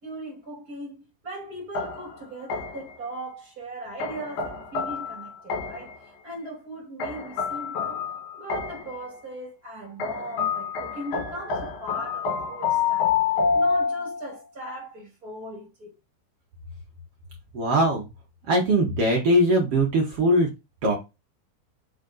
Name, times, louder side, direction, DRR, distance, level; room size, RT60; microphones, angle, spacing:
voice 1, 0.0-5.9 6.2-8.0 8.3-13.2 13.5-15.9, right 1 dB, 25° right, 2.5 m, -38 dB
sound 1, 1.7-3.0 4.0-6.0 7.0-9.0 10.0-14.3, left 6 dB, 70° left, 3.5 m, -28 dB
voice 2, 17.5-18.1 18.5-20.5 20.8-20.9, right 1 dB, 70° right, 1.4 m, -21 dB
6.1 x 4.2 x 3.9 m
omnidirectional pair, 4.8 m